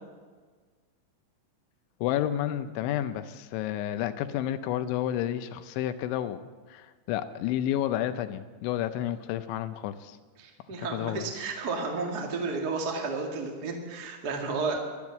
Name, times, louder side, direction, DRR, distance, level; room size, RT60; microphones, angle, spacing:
voice 1, 2.0-6.4 6.7-10.2 10.8-11.3, left 11 dB, 85° left, 10 dB, 3.0 m, -30 dB
voice 2, 10.4-14.8, right 4 dB, 65° right, 1 dB, 0.9 m, -32 dB
12.0 x 12.0 x 7.2 m, 1.5 s
omnidirectional pair, 5.4 m